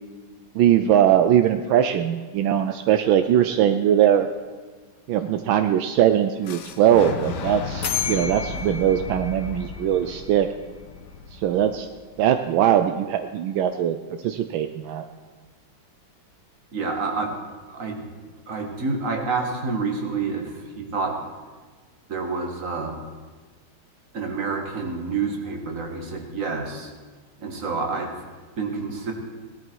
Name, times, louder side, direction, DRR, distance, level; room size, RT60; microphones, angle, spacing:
voice 1, 0.5-4.3 5.1-10.5 11.3-11.9 12.2-14.0 14.2-15.0, right 10 dB, 80° right, 8 dB, 1.4 m, -20 dB
Fire / Explosion, 6.4-12.3, left 4 dB, 60° left, 1.4 m, -35 dB
sound 1, 7.8-10.6, left 8 dB, 80° left, 2.3 m, -32 dB
voice 2, 16.7-17.3 17.7-18.0 18.5-21.1 22.1-23.0 24.1-26.9 27.4-28.2 28.6-29.1, right 4 dB, 40° right, 2 dB, 2.0 m, -28 dB
18.0 x 12.0 x 4.6 m, 1.4 s
omnidirectional pair, 2.2 m